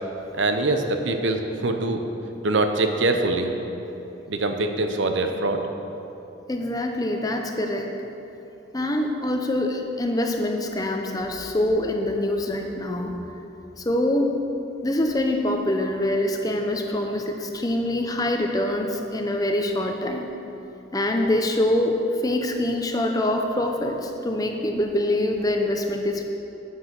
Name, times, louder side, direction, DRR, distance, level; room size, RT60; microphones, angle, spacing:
voice 1, 0.3-2.0 2.4-3.5 4.3-5.6, right 2 dB, 70° right, 5 dB, 0.8 m, -23 dB
voice 2, 6.5-7.9 8.7-13.2 13.8-14.4 14.8-20.3 20.9-26.2, left 1 dB, 20° left, 3 dB, 0.7 m, -25 dB
10.0 x 8.4 x 6.1 m, 3.0 s
head